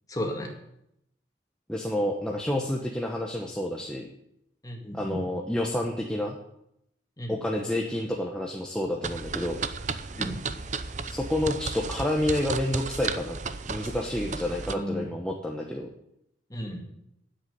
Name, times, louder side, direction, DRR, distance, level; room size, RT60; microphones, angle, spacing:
voice 1, 0.1-0.5 4.6-5.2 7.2-7.4 10.2-10.4 14.6-15.1 16.5-16.8, equal, 20° left, 1 dB, 2.2 m, -34 dB
voice 2, 1.7-4.1 4.9-6.4 7.3-9.6 11.0-13.4 13.7-15.9, left 1 dB, 5° left, -1 dB, 1.0 m, -29 dB
sound 1, 9.0-14.7, right 4 dB, 40° right, 0.7 m, -34 dB
9.9 x 8.2 x 9.3 m, 0.78 s
head